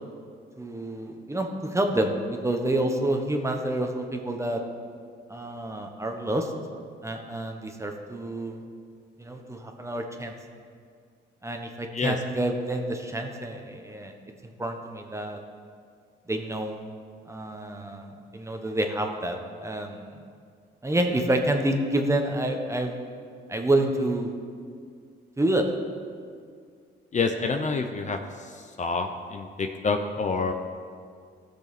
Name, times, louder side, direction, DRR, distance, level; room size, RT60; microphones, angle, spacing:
voice 1, 0.6-4.6 5.3-6.5 7.0-8.6 9.2-10.3 11.4-14.1 14.4-15.4 16.3-16.8 17.3-20.2 20.8-23.1 23.5-24.3 25.4-25.6, right 1 dB, 15° right, 3 dB, 1.2 m, -28 dB
voice 2, 27.1-28.2 28.6-30.5, left 4 dB, 35° left, 5 dB, 0.7 m, -27 dB
16.0 x 6.6 x 4.2 m, 2.2 s
cardioid pair, 90°, 20 cm